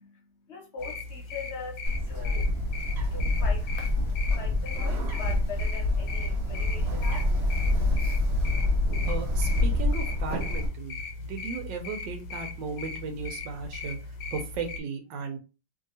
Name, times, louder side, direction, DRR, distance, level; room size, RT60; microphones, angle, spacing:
voice 1, 0.0-2.7 3.0-3.7 4.1-7.3, left 5 dB, 55° left, 0 dB, 0.7 m, -42 dB
sound 1, 0.8-14.8, left 3 dB, 85° left, 1.3 m, -39 dB
Bird, 1.8-10.7, left 2 dB, 45° right, 1.1 m, -26 dB
voice 2, 9.0-14.0 14.3-15.4, right 5 dB, 80° right, 5 dB, 1.3 m, -36 dB
3.2 x 2.7 x 2.7 m, 0.32 s
omnidirectional pair, 2.0 m